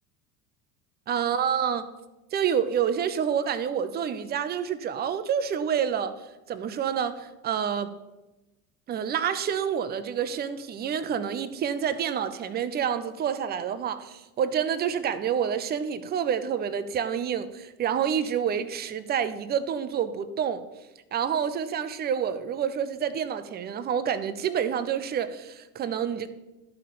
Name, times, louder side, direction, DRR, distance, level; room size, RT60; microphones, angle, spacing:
voice 1, 1.1-1.9 2.3-6.1 6.5-8.0 8.9-20.6 21.1-26.3, right 8 dB, 20° right, 0.6 m, -28 dB
12.0 x 5.5 x 5.5 m
figure-of-eight pair, 65°, 47 cm